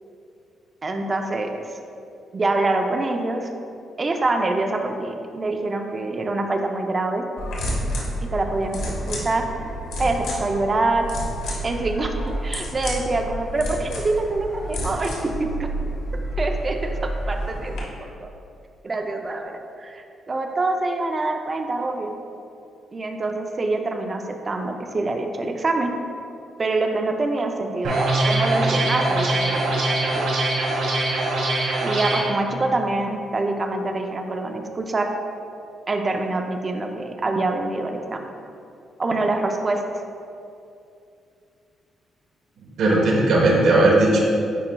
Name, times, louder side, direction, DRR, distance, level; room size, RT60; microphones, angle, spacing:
voice 1, 0.8-1.5 2.3-3.5 4.0-7.2 8.2-8.8 9.1-9.5 10.0-11.1 11.6-15.7 16.4-18.3 18.8-22.2 22.9-25.9 26.6-30.3 31.8-35.1 35.9-38.3 39.0-39.8, right 2 dB, 25° right, 4 dB, 0.4 m, -25 dB
sound 1, 7.4-17.8, equal, 85° left, 1.2 m, -29 dB
sound 2, 27.8-32.2, right 2 dB, 85° right, 1.4 m, -22 dB
voice 2, 42.8-44.2, right 2 dB, 70° right, -3 dB, 1.0 m, -17 dB
9.9 x 4.3 x 2.2 m, 2.5 s
cardioid pair, 175°, 0 cm